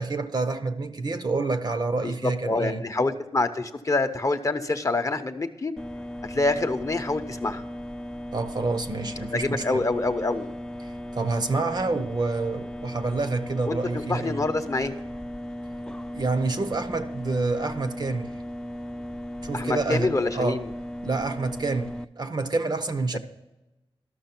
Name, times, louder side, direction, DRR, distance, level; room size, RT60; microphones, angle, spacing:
voice 1, 0.0-2.8 8.3-9.8 10.8-14.4 16.1-18.3 19.4-20.6 21.0-23.2, right 3 dB, 45° right, 0.7 m, -28 dB
voice 2, 2.0-5.7 6.2-7.6 9.3-10.5 13.7-13.8 14.1-14.9 19.5-20.7 23.1-23.2, left 2 dB, 35° left, 0.7 m, -26 dB
sound 1, 5.8-22.0, left 1 dB, 5° left, 0.3 m, -37 dB
12.5 x 6.2 x 5.9 m
wide cardioid pair, 105°, 10 cm